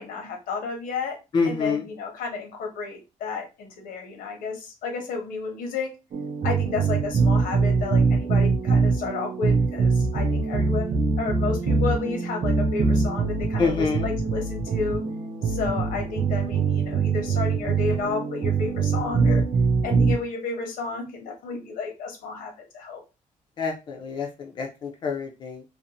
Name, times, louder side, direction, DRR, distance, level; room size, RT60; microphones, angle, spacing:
voice 1, 0.0-1.2 1.5-5.9 6.4-13.7 14.0-15.0 15.4-19.4 19.8-23.0, left 4 dB, 80° left, 3 dB, 0.9 m, -32 dB
voice 2, 1.3-1.8 13.6-14.1 23.6-25.6, left 4 dB, 35° left, 2 dB, 0.4 m, -27 dB
sound 1, 6.1-20.2, right 4 dB, 35° right, 0.4 m, -23 dB
2.5 x 2.0 x 2.8 m, 0.27 s
cardioid pair, 175°, 14 cm